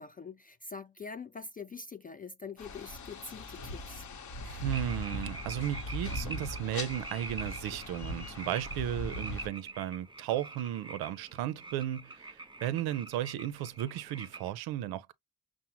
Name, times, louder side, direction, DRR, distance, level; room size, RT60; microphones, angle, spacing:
voice 1, 0.0-4.0, left 4 dB, 25° left, 0.3 m, -44 dB
sound 1, 2.6-9.5, left 2 dB, 50° left, 0.9 m, -40 dB
voice 2, 4.4-15.1, right 12 dB, 85° right, 0.5 m, -35 dB
sound 2, 4.7-14.5, right 3 dB, 15° right, 0.7 m, -46 dB
5.8 x 2.1 x 2.9 m
supercardioid pair, 45°, 36 cm